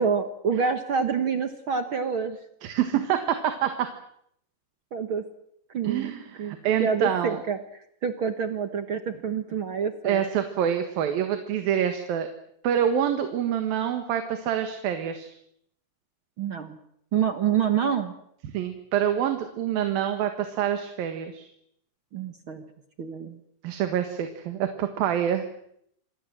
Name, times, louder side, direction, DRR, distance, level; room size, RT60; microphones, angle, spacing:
voice 1, 0.0-2.4 4.9-5.2 5.7-10.2 16.4-16.8 17.1-18.1 22.1-22.7 23.0-23.4, right 6 dB, 55° right, 9 dB, 1.5 m, -27 dB
voice 2, 2.6-3.7 5.8-7.4 10.0-12.3 12.6-15.3 18.5-21.5 23.6-25.4, right 9 dB, 85° right, 7 dB, 3.4 m, -26 dB
27.0 x 21.5 x 7.6 m, 0.73 s
omnidirectional pair, 4.1 m